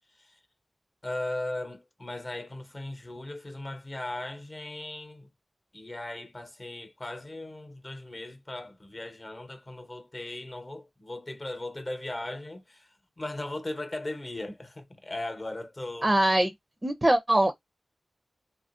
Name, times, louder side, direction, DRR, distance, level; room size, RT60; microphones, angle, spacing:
voice 1, 0.1-0.4 1.0-5.3 5.7-16.1, left 2 dB, 35° left, 0.9 m, -38 dB
voice 2, 16.0-16.5 16.8-17.5, right 1 dB, 25° right, 0.5 m, -22 dB
3.0 x 2.4 x 2.5 m
cardioid pair, 55°, 0 cm